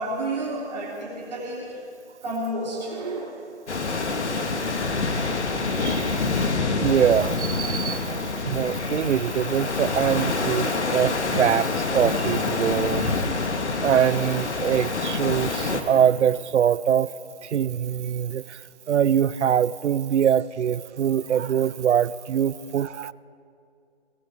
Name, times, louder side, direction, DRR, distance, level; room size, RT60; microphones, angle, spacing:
voice 1, 0.0-1.8 2.2-3.4 18.4-18.5, right 1 dB, 40° right, -6 dB, 3.1 m, -31 dB
sound 1, 3.7-15.8, left 3 dB, 75° left, 1.6 m, -26 dB
voice 2, 6.7-13.2 13.8-17.1 17.4-18.6 18.9-23.1, right 9 dB, 85° right, 19 dB, 0.5 m, -23 dB
19.0 x 18.0 x 3.5 m, 2.4 s
hypercardioid pair, 170°, 34 cm